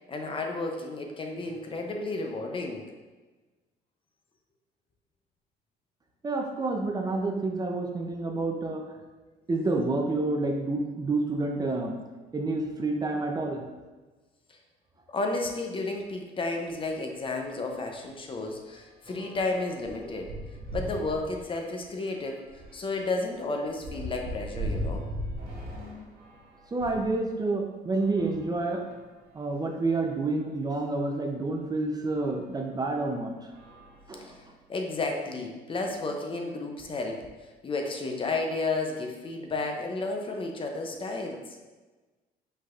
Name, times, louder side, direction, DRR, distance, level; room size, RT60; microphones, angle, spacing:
voice 1, 0.1-2.8 14.5-14.6 15.1-20.3 20.7-25.0 25.7-26.1 34.2-34.4 34.7-41.6, left 3 dB, 30° left, 2 dB, 0.6 m, -32 dB
voice 2, 6.2-8.9 9.5-12.0 12.3-13.6 26.7-28.8 29.3-33.5 34.1-34.4, right 2 dB, 25° right, 2 dB, 0.6 m, -29 dB
sound 1, 16.7-16.9 17.2-17.4 17.7-27.2 27.9-29.2 29.9-30.0 30.2-30.3 32.0-32.1 32.8-33.1 33.4-34.7, equal, 70° right, 1.0 m, -40 dB
5.1 x 4.0 x 2.5 m, 1.2 s
cardioid pair, 110°, 17 cm